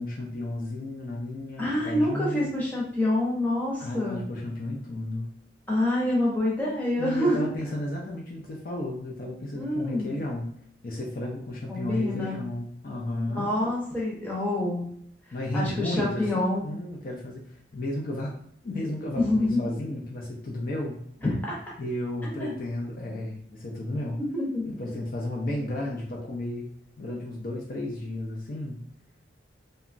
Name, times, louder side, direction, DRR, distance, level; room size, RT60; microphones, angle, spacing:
voice 1, 0.0-2.5 3.8-5.3 7.0-10.5 10.8-13.5 15.3-17.4 17.7-18.3 18.6-21.0 21.8-24.2 24.7-26.7 27.0-28.8, left 1 dB, 50° left, -1 dB, 0.4 m, -33 dB
voice 2, 1.6-4.2 5.7-7.5 9.5-10.1 11.7-12.4 13.3-14.9 15.5-16.6 19.1-19.7 21.2-21.6 22.3-22.5 24.3-24.7, left 1 dB, 10° left, -5 dB, 0.7 m, -26 dB
2.9 x 2.3 x 2.5 m, 0.67 s
head